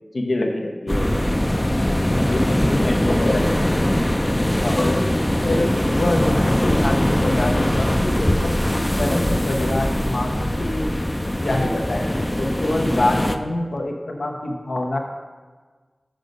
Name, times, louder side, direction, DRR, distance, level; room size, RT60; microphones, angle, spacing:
voice 1, 0.1-1.1 2.3-3.5 4.6-5.0 5.4-10.9 11.4-12.1 12.4-15.0, left 1 dB, 90° left, 1 dB, 0.9 m, -25 dB
sound 1, 0.9-13.4, left 1 dB, 20° left, 0.5 m, -21 dB
6.4 x 5.3 x 5.2 m, 1.4 s
wide cardioid pair, 50°, 0 cm